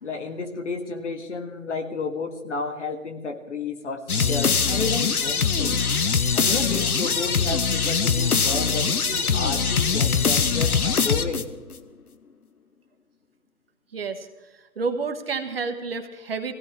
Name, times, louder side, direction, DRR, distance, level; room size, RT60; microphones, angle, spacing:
voice 1, 0.0-5.8 6.3-11.5, left 4 dB, 55° left, 5 dB, 1.9 m, -31 dB
sound 1, 4.1-11.7, left 5 dB, 85° left, 1.1 m, -22 dB
voice 2, 13.9-14.3 14.8-16.5, right 4 dB, 40° right, 6 dB, 1.2 m, -29 dB
21.0 x 16.0 x 3.6 m, 1.1 s
figure-of-eight pair, 155°, 43 cm